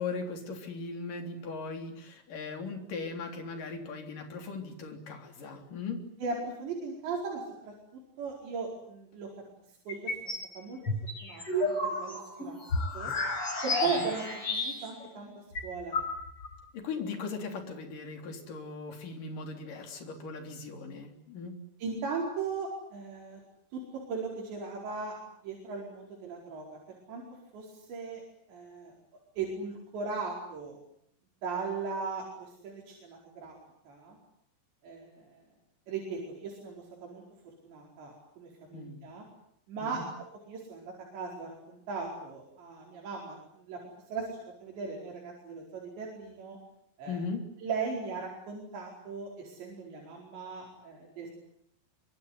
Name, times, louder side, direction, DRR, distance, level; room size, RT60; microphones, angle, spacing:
voice 1, 0.0-6.1 14.0-14.1 16.7-21.6 38.7-39.0 39.8-40.1 47.1-47.5, left 4 dB, 50° left, 5 dB, 5.0 m, -38 dB
voice 2, 6.2-7.7 8.2-9.3 9.9-10.8 11.2-12.6 12.9-13.1 13.6-14.2 14.5-16.0 21.8-23.4 23.7-23.8 24.1-25.2 25.4-27.2 27.5-28.2 28.5-28.9 29.4-30.8 31.4-33.6 33.9-34.2 34.8-35.4 35.9-37.2 37.6-39.2 39.7-43.8 44.1-46.6 47.0-47.2 47.6-51.3, right 4 dB, 90° right, -2 dB, 7.1 m, -38 dB
sound 1, 9.9-10.5 10.9-15.0 15.3-15.4 15.6-16.5, left 2 dB, 30° left, 6.4 m, -31 dB
25.0 x 24.5 x 9.8 m, 0.71 s
omnidirectional pair, 4.9 m